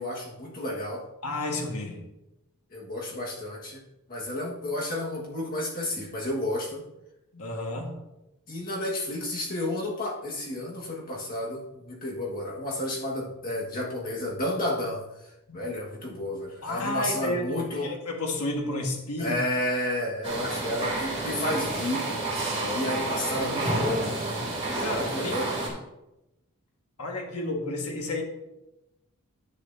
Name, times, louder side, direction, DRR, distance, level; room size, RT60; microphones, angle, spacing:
voice 1, 0.0-1.0 2.7-3.8 4.1-6.8 8.5-15.0 15.5-17.9 19.2-22.1 22.7-25.5, left 1 dB, 40° left, -2 dB, 1.7 m, -31 dB
voice 2, 1.2-2.1 7.3-8.0 15.5-15.6 16.6-19.4 22.4-23.0 24.8-25.7 27.0-28.2, left 1 dB, 75° left, 1 dB, 1.6 m, -32 dB
sound 1, 20.2-25.7, right 2 dB, 25° right, 3.4 m, -30 dB
10.5 x 8.2 x 2.7 m, 0.94 s
head